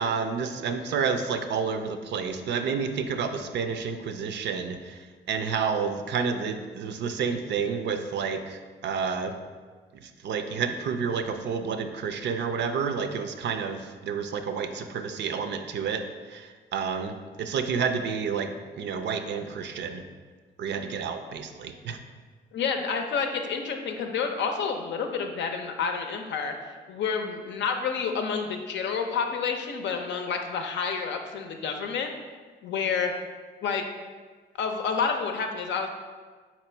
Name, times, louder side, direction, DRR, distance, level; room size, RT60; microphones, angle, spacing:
voice 1, 0.0-9.3 10.0-16.0 16.3-20.0 20.6-22.0, right 6 dB, 60° right, 8 dB, 0.4 m, -30 dB
voice 2, 22.5-32.1 32.6-33.1 33.6-33.8 34.6-35.9, left 5 dB, 65° left, 4 dB, 0.6 m, -29 dB
4.0 x 3.0 x 4.4 m, 1.5 s
cardioid pair, 90°, 20 cm